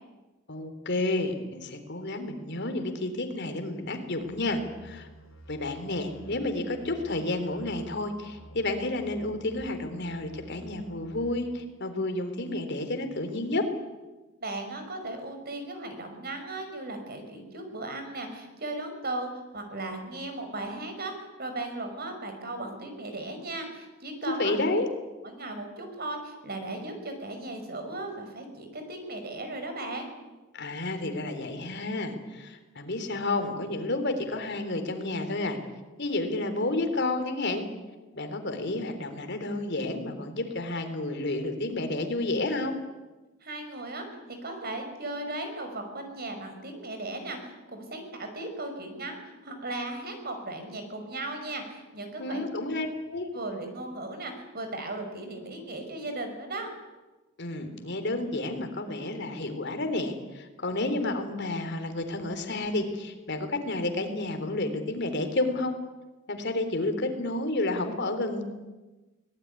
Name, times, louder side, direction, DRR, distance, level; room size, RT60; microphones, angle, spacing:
voice 1, 0.5-5.1 5.5-13.6 24.3-24.9 30.5-35.6 36.0-37.6 38.1-42.8 52.2-53.3 57.4-65.8 66.3-68.4, left 2 dB, 55° left, 7 dB, 3.5 m, -30 dB
sound 1, 4.2-9.7 10.0-11.3, right 1 dB, 75° left, 4.9 m, -50 dB
voice 2, 14.4-24.6 25.2-30.1 43.4-52.4 53.3-56.7, right 2 dB, 50° right, 6 dB, 5.6 m, -37 dB
23.5 x 19.5 x 9.7 m, 1.1 s
head